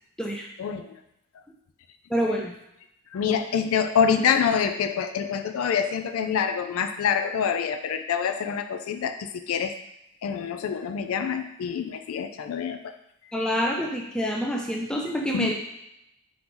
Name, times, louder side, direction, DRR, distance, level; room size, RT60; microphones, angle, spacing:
voice 1, 0.6-1.0 2.3-2.4 3.1-9.8 10.2-12.9 15.3-15.5, left 7 dB, 75° left, 8 dB, 0.3 m, -26 dB
voice 2, 2.1-2.5 3.3-3.4 13.3-15.5, equal, 5° left, -1 dB, 0.4 m, -27 dB
3.9 x 3.7 x 3.0 m, 0.84 s
head